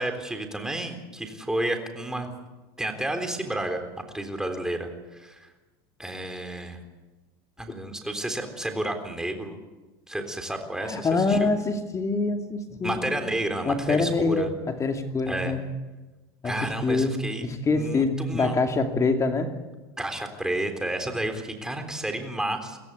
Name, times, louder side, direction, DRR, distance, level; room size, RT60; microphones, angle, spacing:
voice 1, 0.0-2.3 2.8-3.8 4.1-5.5 6.0-6.8 7.6-9.6 10.1-11.5 12.8-14.5 15.3-15.5 16.4-18.5 20.0-22.8, right 1 dB, 5° right, 5 dB, 3.7 m, -31 dB
voice 2, 10.8-13.3 13.7-15.6 16.4-17.1 17.4-19.5, left 3 dB, 25° left, 5 dB, 2.7 m, -25 dB
23.5 x 16.5 x 8.3 m, 1.1 s
supercardioid pair, 105°, 13 cm